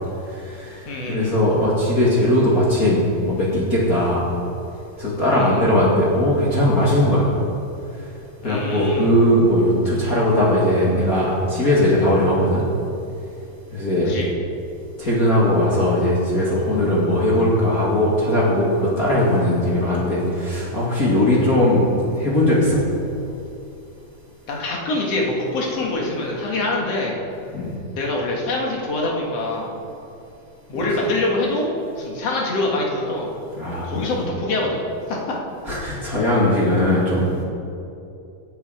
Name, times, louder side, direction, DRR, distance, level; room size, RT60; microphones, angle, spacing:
voice 1, 0.3-4.3 5.0-7.3 8.4-12.6 13.7-14.1 15.0-21.9 22.2-22.8 27.5-27.7 33.6-34.1 35.7-37.4, left 1 dB, 30° left, -7 dB, 1.7 m, -19 dB
voice 2, 0.9-1.4 5.3-5.6 8.4-9.1 14.0-14.3 24.5-27.2 27.9-29.8 30.7-33.4 33.8-34.8 35.1-35.4, left 2 dB, 50° left, -2 dB, 2.5 m, -25 dB
17.0 x 8.4 x 5.0 m, 2.7 s
omnidirectional pair, 4.2 m